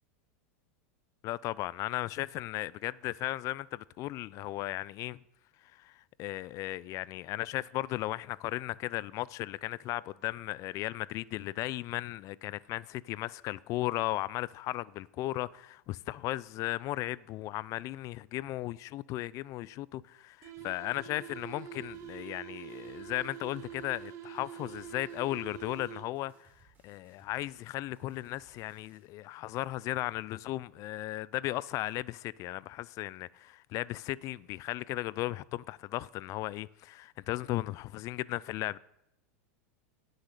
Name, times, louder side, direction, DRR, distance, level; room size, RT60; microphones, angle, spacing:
voice 1, 1.2-5.2 5.7-26.5 26.8-38.8, left 16 dB, 45° left, 0.4 m, -36 dB
sound 1, 20.4-26.4, right 10 dB, 40° right, 2.5 m, -46 dB
sound 2, 21.8-29.1, right 3 dB, 20° right, 4.7 m, -66 dB
17.5 x 6.5 x 6.7 m
supercardioid pair, 120°, 8 cm